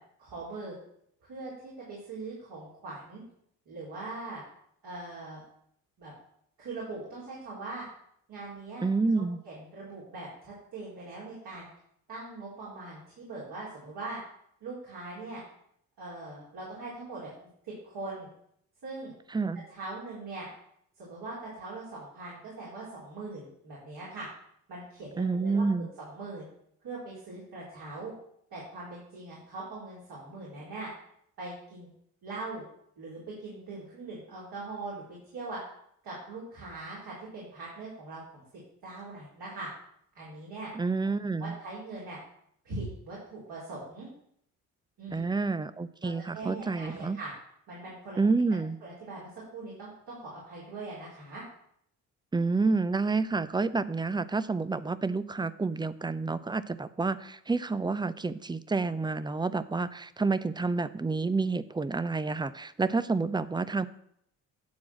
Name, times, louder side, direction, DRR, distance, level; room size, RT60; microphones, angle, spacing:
voice 1, 0.2-0.8 1.3-3.2 3.7-4.4 4.8-5.4 6.0-6.1 6.6-7.9 8.3-8.8 9.2-11.7 12.1-14.2 14.6-15.4 16.0-17.3 17.6-18.3 18.8-19.1 19.7-20.5 21.0-24.3 24.7-26.4 26.8-28.1 28.5-30.9 31.4-31.9 32.2-32.6 33.0-35.6 36.0-39.7 40.2-40.7 41.4-42.2 42.6-44.1 45.0-45.4 46.0-47.3 47.7-48.2 48.8-51.4, right 3 dB, 60° right, -7 dB, 3.8 m, -41 dB
voice 2, 8.8-9.4 19.3-19.6 25.2-25.9 40.7-41.6 45.1-47.2 48.2-48.8 52.3-63.9, right 3 dB, 10° right, 14 dB, 0.5 m, -29 dB
9.4 x 4.6 x 6.3 m, 0.70 s
hypercardioid pair, 50°, 42 cm